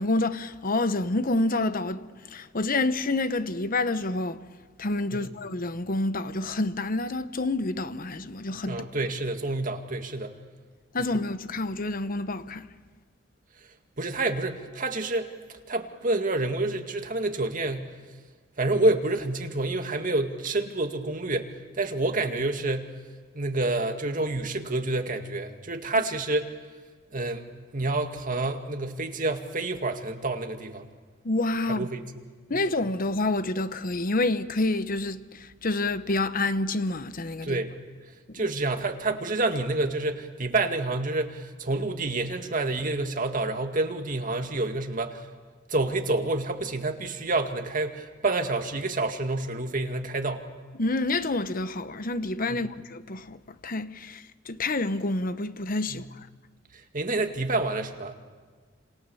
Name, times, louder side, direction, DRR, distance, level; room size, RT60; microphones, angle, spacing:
voice 1, 0.0-2.1 2.3-4.4 4.8-8.8 10.9-12.7 31.2-31.9 32.5-37.6 38.3-38.4 50.8-53.4 53.6-56.1, left 2 dB, 45° left, 1.0 m, -28 dB
voice 2, 8.7-10.3 11.0-11.2 14.0-15.3 15.7-18.0 18.6-22.9 23.3-26.6 27.1-30.9 31.7-32.0 32.5-32.6 37.4-37.7 38.3-45.3 45.7-50.5 52.5-52.7 55.9-56.1 56.7-58.1, right 2 dB, 45° right, 2.1 m, -28 dB
29.5 x 27.0 x 7.1 m
head